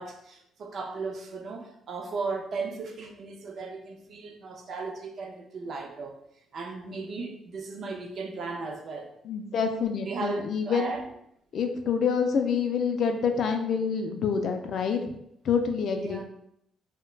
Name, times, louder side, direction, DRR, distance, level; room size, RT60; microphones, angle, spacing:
voice 1, 0.0-6.2 6.5-9.1 10.1-11.0 15.9-16.2, right 4 dB, 50° right, 2 dB, 0.4 m, -36 dB
voice 2, 9.2-11.0 11.5-15.1 15.4-16.2, left 6 dB, 55° left, 6 dB, 0.3 m, -27 dB
3.1 x 2.1 x 2.3 m, 0.77 s
cardioid pair, 125°, 0 cm